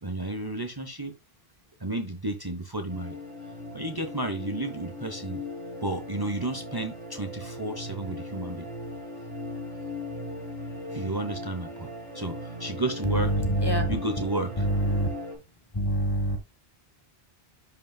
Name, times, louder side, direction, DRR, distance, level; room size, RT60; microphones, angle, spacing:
voice 1, 0.0-1.1 1.8-3.2 3.7-5.4 5.8-8.7 10.9-11.9 12.1-13.3 13.9-14.7, right 2 dB, 25° right, 0.8 m, -32 dB
sound 1, 2.9-15.3, left 1 dB, 40° right, 4.8 m, -38 dB
voice 2, 13.0-14.0 14.6-15.1 15.7-16.4, equal, 25° left, 1.0 m, -25 dB
10.5 x 5.3 x 2.2 m
omnidirectional pair, 1.1 m